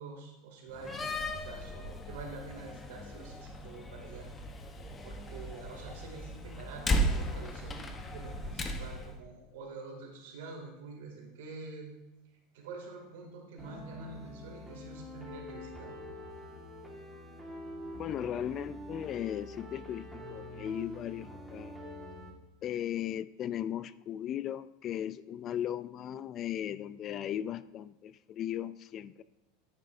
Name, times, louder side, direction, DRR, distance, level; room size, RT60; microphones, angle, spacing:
voice 1, 0.0-4.3 5.0-7.9 8.1-11.9 12.5-15.9, right 3 dB, 75° right, 0 dB, 2.5 m, -46 dB
Slam, 0.7-9.1, equal, 25° left, 1.0 m, -36 dB
sound 1, 13.6-22.3, equal, 5° right, 1.7 m, -45 dB
voice 2, 18.0-21.8 22.6-29.2, left 10 dB, 40° left, 17 dB, 0.3 m, -37 dB
9.5 x 9.5 x 2.7 m, 0.96 s
hypercardioid pair, 100°, 0 cm